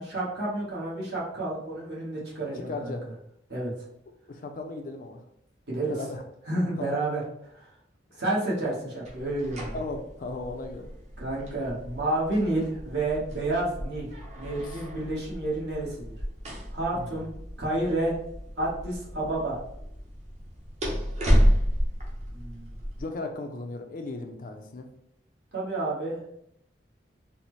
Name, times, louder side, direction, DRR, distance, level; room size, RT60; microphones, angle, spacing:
voice 1, 0.0-2.9 3.5-3.7 5.7-5.9 6.5-7.2 7.5-7.7 8.2-9.8 11.2-14.1 14.4-16.2 16.7-17.3 17.6-18.1 18.6-19.6 22.3-22.7 25.5-26.2, right 2 dB, 65° right, -5 dB, 1.1 m, -30 dB
voice 2, 2.5-3.1 4.3-5.2 5.8-6.2 6.8-7.0 8.1-8.2 9.7-10.9 16.9-17.3 23.0-24.9, left 2 dB, 50° left, 5 dB, 0.4 m, -36 dB
sound 1, 9.0-23.0, equal, 40° right, 0.7 m, -31 dB
4.1 x 2.0 x 3.0 m, 0.74 s
head